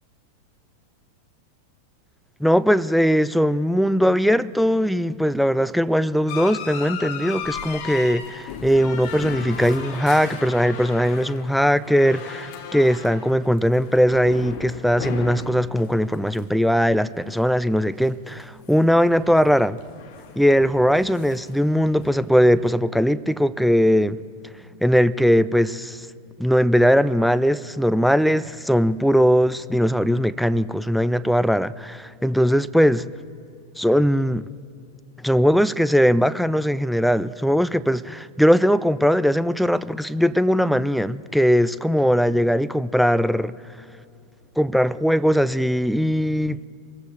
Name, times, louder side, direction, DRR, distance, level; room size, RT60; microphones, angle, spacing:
voice 1, 2.4-19.8 20.4-24.2 24.8-26.1 26.4-33.1 33.8-34.5 35.2-43.5 44.6-46.6, equal, ahead, 0.4 m, -20 dB
sound 1, 6.3-18.7 19.0-22.7, left 7 dB, 45° left, 1.6 m, -37 dB
24.5 x 14.5 x 3.4 m
figure-of-eight pair, 90°, 0 cm